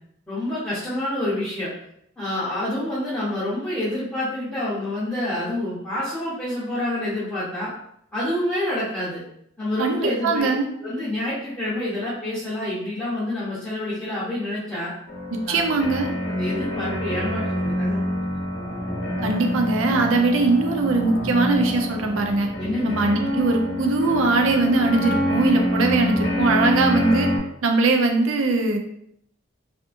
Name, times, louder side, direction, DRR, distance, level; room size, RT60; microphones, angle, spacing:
voice 1, 0.3-1.7 2.2-7.7 8.1-9.2 9.6-10.5 10.8-14.9 15.5-15.7 16.3-18.3 22.6-23.0, left 1 dB, 5° left, -13 dB, 0.7 m, -27 dB
voice 2, 9.8-10.7 15.3-16.1 19.2-22.5 22.8-27.3 27.6-28.8, right 3 dB, 70° right, 4 dB, 0.4 m, -21 dB
sound 1, 15.1-27.4, equal, 65° left, 0.7 m, -26 dB
2.6 x 2.5 x 2.5 m, 0.72 s
head